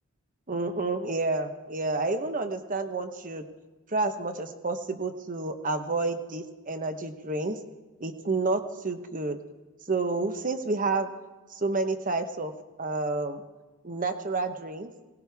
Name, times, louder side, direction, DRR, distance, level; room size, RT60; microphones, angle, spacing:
voice 1, 0.5-3.4 3.9-7.6 8.0-9.4 9.9-11.1 11.5-13.4 13.8-14.9, right 3 dB, 40° right, 8 dB, 1.1 m, -29 dB
19.0 x 18.5 x 3.6 m, 1.2 s
head